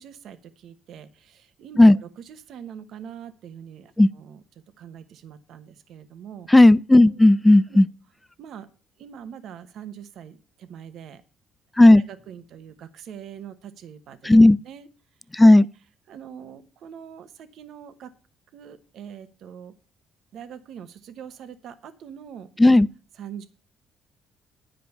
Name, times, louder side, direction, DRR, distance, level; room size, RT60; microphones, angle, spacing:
voice 1, 0.0-4.4 4.8-6.5 7.0-7.2 7.7-7.8 8.4-8.7 9.0-11.2 11.9-14.3 14.6-14.9 16.1-18.1 18.5-19.7 20.3-22.5 23.2-23.5, right 8 dB, 70° right, 1.0 m, -43 dB
voice 2, 6.5-7.9 11.8-12.0 14.2-14.6 15.3-15.7 22.6-22.9, left 1 dB, 10° left, 0.4 m, -13 dB
10.0 x 5.1 x 7.0 m
cardioid pair, 90°, 0 cm